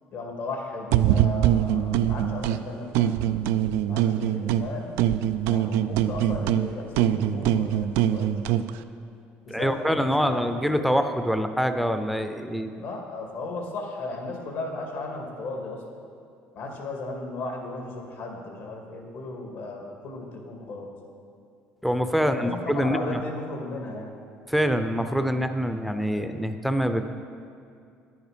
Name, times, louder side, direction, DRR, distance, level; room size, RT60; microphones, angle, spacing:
voice 1, 0.1-3.2 3.9-5.0 5.5-8.6 9.5-10.9 11.3-11.4 12.7-15.8 16.5-20.9 22.2-24.1, left 2 dB, 70° left, 1 dB, 2.2 m, -36 dB
sound 1, 0.9-2.6 2.9-4.7 5.0-8.7, right 11 dB, 85° right, 0.4 m, -23 dB
voice 2, 9.5-12.7 21.8-23.2 24.5-27.0, equal, ahead, 8 dB, 0.6 m, -25 dB
11.0 x 9.5 x 5.1 m, 2.4 s
cardioid pair, 115°, 4 cm